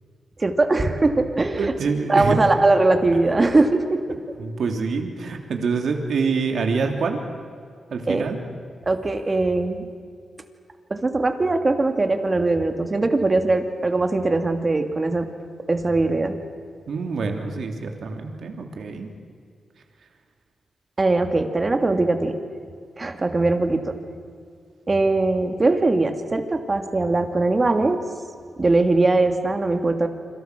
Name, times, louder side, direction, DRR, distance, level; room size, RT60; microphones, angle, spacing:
voice 1, 0.4-1.7 2.1-4.2 8.1-8.3 8.9-9.8 10.9-15.3 15.7-16.4 21.0-22.4 23.0-24.0 24.9-28.0 28.6-30.1, right 2 dB, 30° right, 6 dB, 2.7 m, -21 dB
voice 2, 1.6-2.4 3.1-3.2 4.4-7.2 7.9-8.4 16.9-19.1, right 4 dB, 70° right, 4 dB, 3.3 m, -26 dB
28.5 x 25.5 x 6.3 m, 2.2 s
cardioid pair, 90°, 0 cm